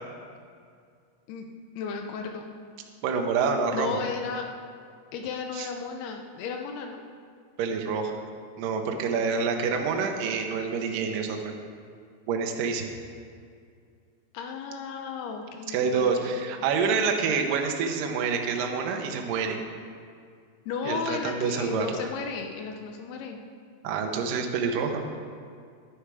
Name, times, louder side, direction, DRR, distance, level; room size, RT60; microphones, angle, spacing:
voice 1, 1.8-2.5 3.7-4.5 5.1-7.0 14.3-16.3 20.7-23.4, left 5 dB, 75° left, 4 dB, 2.5 m, -34 dB
voice 2, 3.0-4.0 5.5-5.7 7.6-8.1 8.6-11.5 12.3-12.8 15.7-19.6 20.8-22.0 23.8-25.1, right 5 dB, 75° right, 3 dB, 2.0 m, -27 dB
11.5 x 10.0 x 4.9 m, 2.2 s
omnidirectional pair, 5.1 m